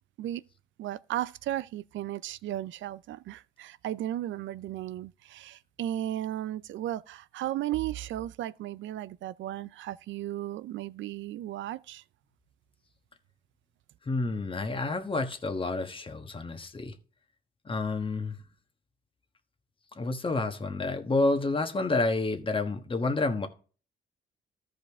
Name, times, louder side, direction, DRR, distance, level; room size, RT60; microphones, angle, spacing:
voice 1, 0.8-12.0, right 13 dB, 75° right, 0.5 m, -35 dB
voice 2, 14.1-16.9 17.6-18.4 19.9-23.5, left 3 dB, 25° left, 1.3 m, -29 dB
13.5 x 5.2 x 3.5 m
cardioid pair, 90°, 20 cm